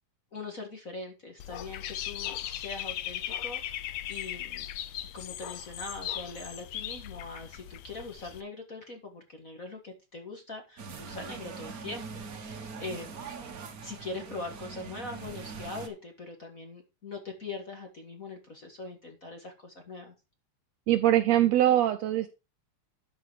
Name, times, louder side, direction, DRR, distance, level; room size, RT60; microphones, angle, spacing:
voice 1, 0.3-4.6 5.1-13.3 13.8-20.1, left 3 dB, 35° left, 3 dB, 1.6 m, -42 dB
Dog / Bird, 1.4-8.4, left 12 dB, 70° left, 1.8 m, -38 dB
sound 1, 10.8-15.9, right 5 dB, 60° right, 0.9 m, -42 dB
voice 2, 20.9-22.3, right 12 dB, 75° right, 10 dB, 1.6 m, -22 dB
12.5 x 5.0 x 4.9 m, 0.28 s
omnidirectional pair, 3.5 m